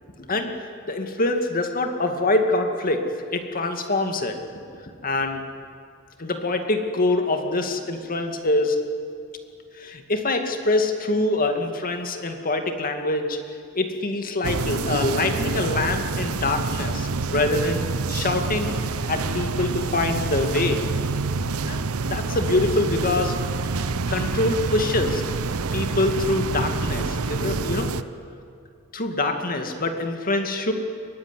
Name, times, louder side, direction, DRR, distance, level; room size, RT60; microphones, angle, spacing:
voice 1, 0.2-0.5 0.9-3.1 3.3-4.4 5.0-5.4 6.2-8.8 9.8-13.4 13.7-18.8 19.1-20.9 21.7-21.8 22.1-23.4 24.1-25.2 25.7-27.9 28.9-30.7, left 2 dB, 40° left, 5 dB, 2.2 m, -24 dB
sound 1, 14.4-28.0, right 4 dB, 75° right, 0.8 m, -27 dB
23.5 x 19.5 x 9.9 m, 2.4 s
head